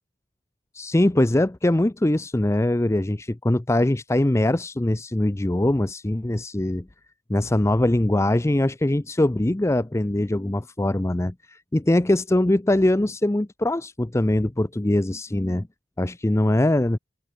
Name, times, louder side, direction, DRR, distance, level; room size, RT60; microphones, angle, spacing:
voice 1, 0.7-6.9 7.3-15.7 16.0-17.0, left 1 dB, 15° left, 0.6 m, -22 dB
head